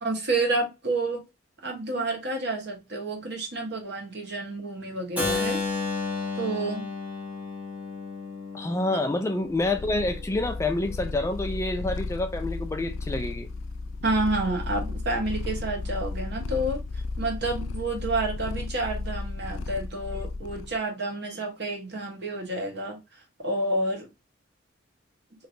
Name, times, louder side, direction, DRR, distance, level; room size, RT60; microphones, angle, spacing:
voice 1, 0.0-1.2 1.6-5.6 6.4-6.9 8.9-9.0 14.0-16.8 17.2-23.0 23.4-24.1, right 2 dB, 60° right, 1.2 m, -29 dB
Keyboard (musical), 5.2-11.0, left 4 dB, 10° right, 1.1 m, -33 dB
voice 2, 8.5-13.5, left 2 dB, 15° left, 0.4 m, -28 dB
Purr, 9.5-20.8, left 3 dB, 85° left, 0.3 m, -34 dB
3.2 x 2.8 x 2.5 m
head